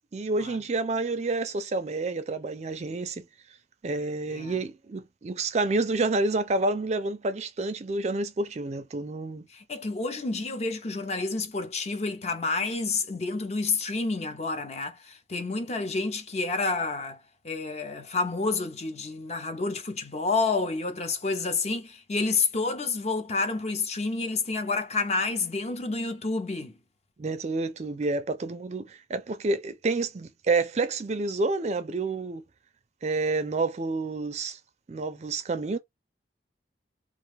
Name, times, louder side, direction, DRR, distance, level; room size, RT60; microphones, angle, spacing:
voice 1, 0.1-3.3 3.8-9.4 27.2-32.4 33.0-34.6 34.9-35.8, right 3 dB, 35° right, 0.4 m, -29 dB
voice 2, 9.5-17.2 17.4-26.7, left 3 dB, 35° left, 0.5 m, -29 dB
2.4 x 2.3 x 3.2 m
head